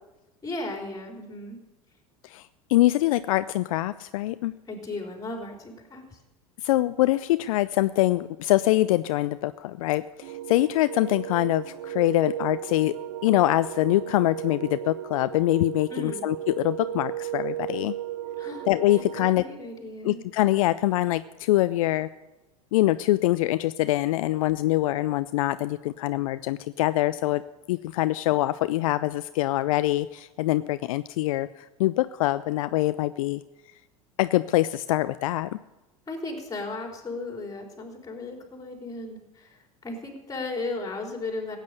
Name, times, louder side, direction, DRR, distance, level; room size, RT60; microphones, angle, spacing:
voice 1, 0.4-1.6 4.7-6.2 15.9-16.2 18.4-18.7 19.3-20.2 36.1-41.6, left 2 dB, 20° left, 1 dB, 3.8 m, -35 dB
voice 2, 2.2-4.5 6.6-13.0 13.2-17.9 18.7-19.5 20.0-22.1 22.7-27.4 27.7-33.4 34.2-35.6, left 16 dB, 65° left, 14 dB, 0.4 m, -24 dB
sound 1, 10.2-19.3, right 12 dB, 70° right, 0.6 m, -35 dB
16.0 x 9.1 x 6.6 m, 1.0 s
hypercardioid pair, 85°, 19 cm